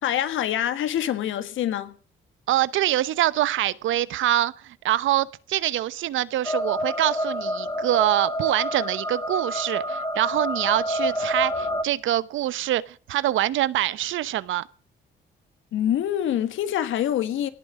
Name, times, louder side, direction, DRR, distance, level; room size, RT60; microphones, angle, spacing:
voice 1, 0.0-2.0 15.7-17.5, left 11 dB, 80° left, 1.8 m, -25 dB
voice 2, 2.5-14.6, right 13 dB, 80° right, 0.9 m, -25 dB
sound 1, 6.4-11.8, equal, 20° left, 2.3 m, -28 dB
17.5 x 8.6 x 9.2 m
cardioid pair, 90°, 20 cm